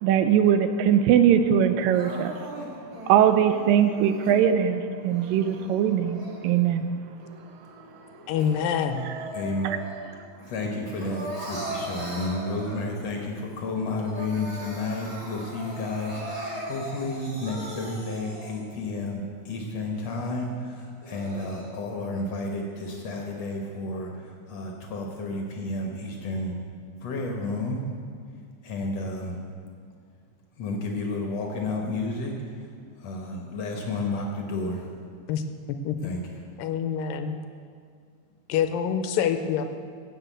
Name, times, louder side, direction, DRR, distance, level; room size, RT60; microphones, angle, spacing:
voice 1, 0.0-2.4 3.1-6.9 9.0-9.2 9.6-9.8, right 9 dB, 80° right, 9 dB, 2.2 m, -21 dB
Crying sobbing, 1.9-4.3 5.0-6.8 7.2-10.1 10.4-13.1 13.5-13.6 13.9-18.8 19.3-19.4 19.9-20.0 20.8-21.7, right 1 dB, 15° right, 1.5 m, -39 dB
voice 2, 8.3-9.1 35.3-35.4 35.9-36.0 36.6-37.4 38.5-39.6, left 8 dB, 80° left, 8 dB, 2.3 m, -26 dB
voice 3, 9.3-9.7 10.4-24.1 24.5-26.5 27.0-27.8 28.6-29.4 30.6-32.3 33.0-34.8 36.0-36.4, left 2 dB, 60° left, 1 dB, 1.9 m, -31 dB
16.0 x 6.1 x 8.0 m, 2.1 s
omnidirectional pair, 4.1 m